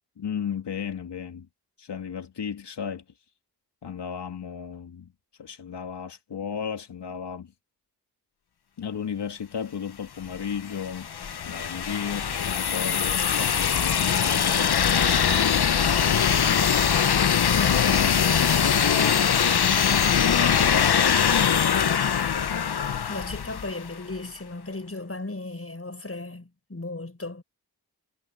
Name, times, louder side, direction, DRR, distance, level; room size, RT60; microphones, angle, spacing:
voice 1, 0.2-1.5 1.8-3.0 3.8-5.1 5.4-7.5 8.8-11.1 11.5-15.0 17.5-17.8 18.3-19.1 20.1-22.5, left 7 dB, 90° left, 2.4 m, -34 dB
sound 1, 10.3-24.0, left 7 dB, 70° left, 1.1 m, -22 dB
voice 2, 23.1-27.4, left 2 dB, 35° left, 6.4 m, -37 dB
cardioid pair, 40°, 40 cm